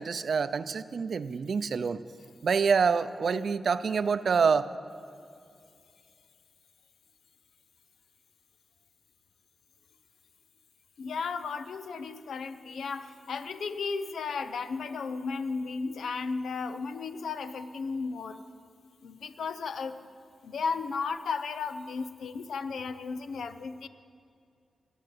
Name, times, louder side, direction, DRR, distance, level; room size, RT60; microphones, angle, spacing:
voice 1, 0.0-2.0 2.4-4.7, right 5 dB, 70° right, 13 dB, 0.5 m, -26 dB
voice 2, 11.0-18.4 19.0-20.0 20.4-23.9, left 5 dB, 90° left, 10 dB, 0.7 m, -34 dB
17.5 x 9.8 x 7.8 m, 2.4 s
cardioid pair, 75°, 0 cm